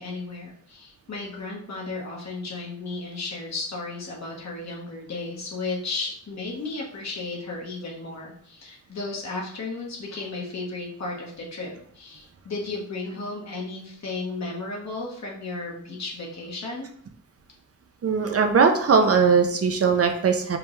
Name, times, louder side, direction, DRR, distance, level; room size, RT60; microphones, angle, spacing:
voice 1, 0.0-16.9, left 3 dB, 55° left, -3 dB, 1.1 m, -34 dB
voice 2, 18.0-20.6, right 5 dB, 50° right, 5 dB, 0.4 m, -20 dB
5.2 x 2.2 x 3.0 m, 0.63 s
wide cardioid pair, 170°, 32 cm